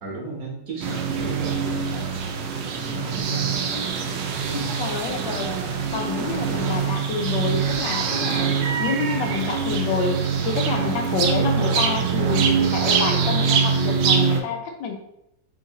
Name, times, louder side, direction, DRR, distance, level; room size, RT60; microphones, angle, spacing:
voice 1, 0.0-3.6 4.4-4.8 6.2-6.6, right 2 dB, 55° right, -3 dB, 1.3 m, -35 dB
sound 1, 0.8-14.4, right 6 dB, 80° right, 1.2 m, -24 dB
voice 2, 4.8-5.5 5.9-8.5 8.8-14.9, left 5 dB, 90° left, 3 dB, 1.4 m, -28 dB
3.7 x 2.6 x 3.9 m, 0.81 s
omnidirectional pair, 1.9 m